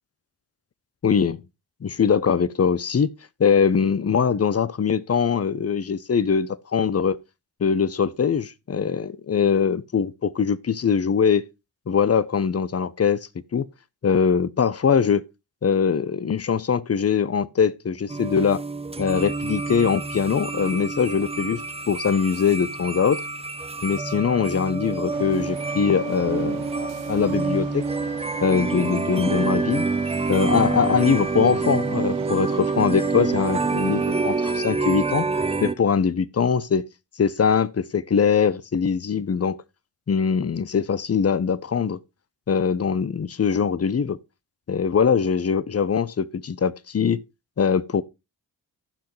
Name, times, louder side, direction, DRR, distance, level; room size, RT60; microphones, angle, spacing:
voice 1, 1.0-1.4 1.8-3.1 3.4-7.2 7.6-11.5 11.9-13.7 14.0-15.2 15.6-18.6 19.0-21.6 21.9-23.2 23.8-27.8 28.4-29.9 30.3-35.2 35.6-36.8 37.2-39.6 40.1-42.0 42.5-44.2 44.7-47.2 47.6-48.0, left 6 dB, 35° left, 0.8 m, -22 dB
sound 1, 18.1-35.7, right 3 dB, 15° right, 0.7 m, -27 dB
sound 2, 25.1-34.6, right 11 dB, 90° right, 0.9 m, -39 dB
14.5 x 5.8 x 3.2 m
supercardioid pair, 45°, 45 cm